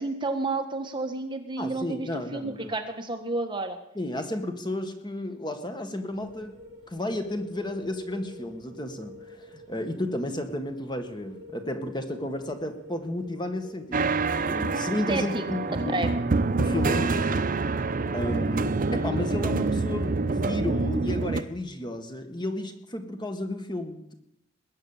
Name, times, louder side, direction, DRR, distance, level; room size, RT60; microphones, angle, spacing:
voice 1, 0.0-3.8 15.1-15.4 15.9-16.2, right 2 dB, 25° right, 5 dB, 1.4 m, -30 dB
voice 2, 1.6-2.7 3.9-6.6 6.9-14.1 14.4-16.0 16.6-17.4 18.1-24.1, left 1 dB, 25° left, 6 dB, 1.6 m, -32 dB
sound 1, 6.1-15.9, left 1 dB, 70° right, 6.5 m, -48 dB
sound 2, 13.9-21.4, right 3 dB, 45° right, 0.6 m, -26 dB
20.5 x 8.8 x 7.3 m, 0.78 s
head